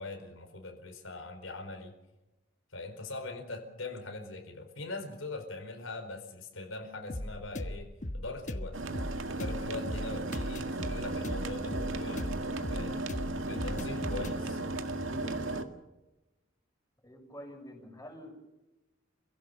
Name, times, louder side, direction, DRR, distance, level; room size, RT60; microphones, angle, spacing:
voice 1, 0.0-1.9 2.7-8.8 9.3-12.4 12.7-13.0 13.4-14.6, left 2 dB, 90° left, 4 dB, 4.7 m, -42 dB
sound 1, 7.1-14.4, left 1 dB, 40° left, 1.2 m, -38 dB
sound 2, 8.7-15.6, right 2 dB, 80° right, 2.0 m, -35 dB
voice 2, 17.0-18.3, equal, 15° left, 1 dB, 6.5 m, -47 dB
29.0 x 16.5 x 7.0 m, 1.0 s
head